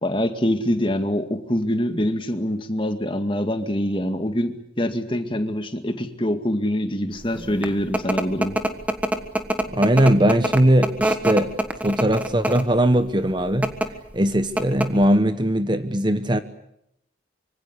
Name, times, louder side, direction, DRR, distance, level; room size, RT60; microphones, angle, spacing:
voice 1, 0.0-8.6, left 1 dB, 25° left, 7 dB, 2.1 m, -24 dB
sound 1, 7.3-12.8 13.5-13.9 14.2-14.3 14.6-15.1, equal, 10° right, 1.4 m, -24 dB
voice 2, 9.7-11.5 11.8-13.7 14.1-16.4, right 1 dB, 25° right, 10 dB, 1.0 m, -19 dB
25.5 x 24.5 x 8.2 m, 0.78 s
head